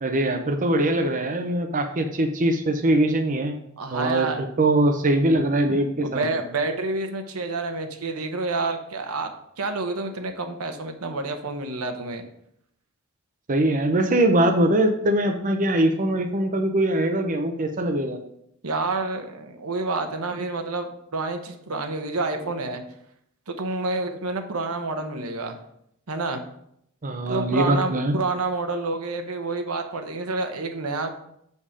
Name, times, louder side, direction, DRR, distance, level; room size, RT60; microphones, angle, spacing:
voice 1, 0.0-3.6 3.9-4.3 4.6-6.2 13.5-18.2 27.0-28.2, right 1 dB, 35° right, 4 dB, 0.7 m, -22 dB
voice 2, 3.8-4.5 6.0-9.3 9.6-12.2 18.6-22.8 23.5-25.6 26.1-26.4 27.3-31.1, right 3 dB, 80° right, 5 dB, 1.0 m, -28 dB
6.9 x 5.4 x 5.0 m, 0.73 s
head